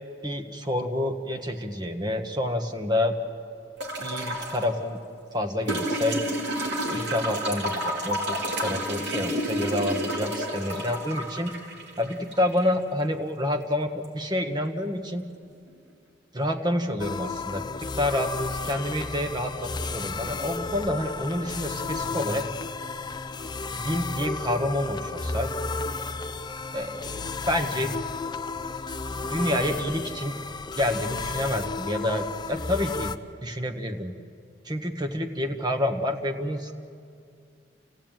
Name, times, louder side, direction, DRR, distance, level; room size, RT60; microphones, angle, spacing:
voice 1, 0.2-3.1 4.0-5.0 5.3-6.2 6.9-8.4 8.6-11.5 12.0-15.2 16.3-17.6 18.0-18.3 18.6-22.5 23.8-25.5 26.7-27.9 29.3-30.3 30.8-33.1 33.4-34.1 34.6-36.9, left 1 dB, 25° right, 5 dB, 1.5 m, -28 dB
sound 1, 3.8-4.6 5.7-12.7 14.0-14.1, right 1 dB, 65° right, 3.4 m, -30 dB
sound 2, 17.0-33.2, left 3 dB, 25° left, 0.6 m, -33 dB
28.5 x 16.0 x 9.1 m, 2.3 s
head